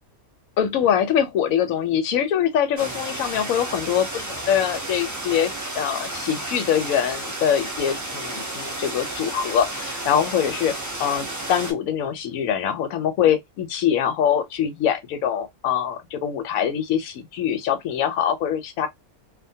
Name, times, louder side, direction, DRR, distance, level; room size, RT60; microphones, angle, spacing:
voice 1, 0.6-10.7 11.0-18.9, left 9 dB, 75° left, 1.0 m, -23 dB
sound 1, 2.8-11.7, right 1 dB, 25° right, 0.3 m, -32 dB
2.5 x 2.2 x 2.6 m
omnidirectional pair, 1.5 m